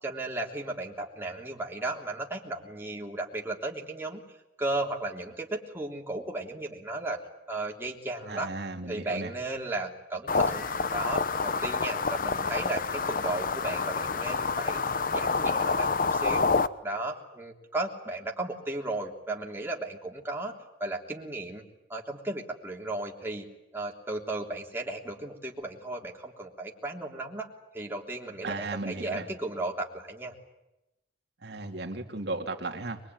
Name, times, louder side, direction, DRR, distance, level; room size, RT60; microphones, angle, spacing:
voice 1, 0.0-4.2 4.6-7.2 7.5-8.5 8.9-14.8 15.1-16.5 16.8-20.5 20.8-21.6 21.9-23.5 23.7-27.5 27.7-30.3, right 2 dB, 15° right, -1 dB, 3.3 m, -35 dB
voice 2, 8.3-9.3 28.4-29.3 31.4-33.0, right 2 dB, 65° right, 4 dB, 2.5 m, -35 dB
sound 1, 10.3-16.7, left 4 dB, 50° left, 0.9 m, -28 dB
23.5 x 22.5 x 9.4 m, 0.94 s
head